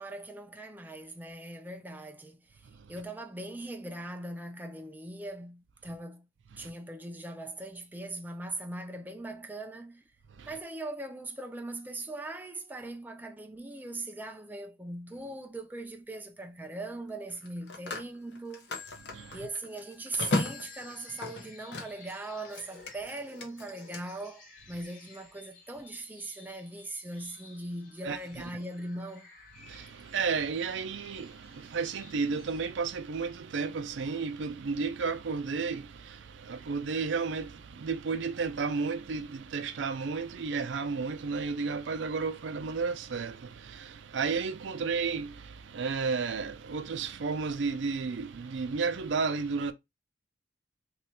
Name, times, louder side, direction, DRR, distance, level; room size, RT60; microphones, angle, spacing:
voice 1, 0.0-6.3 6.6-10.0 10.5-18.9 19.3-29.3, right 2 dB, 10° right, 0.4 m, -40 dB
Telephone, 15.1-15.3 17.3-22.1 22.4-24.0, left 2 dB, 75° left, 0.9 m, -37 dB
voice 2, 19.0-19.5 28.0-28.4 29.6-49.7, right 5 dB, 90° right, 0.4 m, -33 dB
sound 1, 20.1-32.6, left 3 dB, 50° left, 1.5 m, -56 dB
3.0 x 2.3 x 4.2 m
head